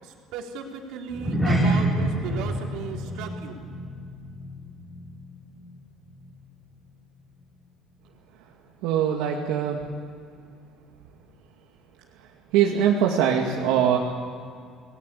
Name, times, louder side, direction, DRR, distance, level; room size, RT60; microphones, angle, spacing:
voice 1, 0.0-3.6, right 6 dB, 65° right, 1 dB, 3.8 m, -36 dB
sound 1, 1.1-5.7 6.0-6.3 6.8-6.9, right 1 dB, ahead, 4.1 m, -27 dB
voice 2, 8.8-9.8 12.5-14.0, right 9 dB, 80° right, -1 dB, 2.4 m, -22 dB
27.5 x 20.0 x 8.5 m, 2.3 s
cardioid pair, 175°, 0 cm